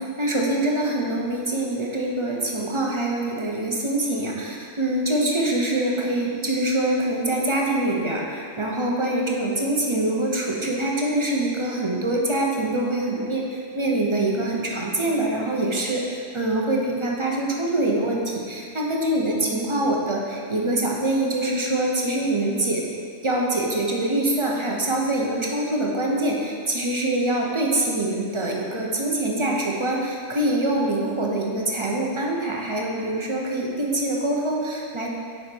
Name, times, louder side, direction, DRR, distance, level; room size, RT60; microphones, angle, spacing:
voice 1, 0.0-22.8 23.2-35.1, right 1 dB, 25° right, -2 dB, 0.8 m, -24 dB
7.1 x 5.7 x 4.6 m, 2.1 s
omnidirectional pair, 1.3 m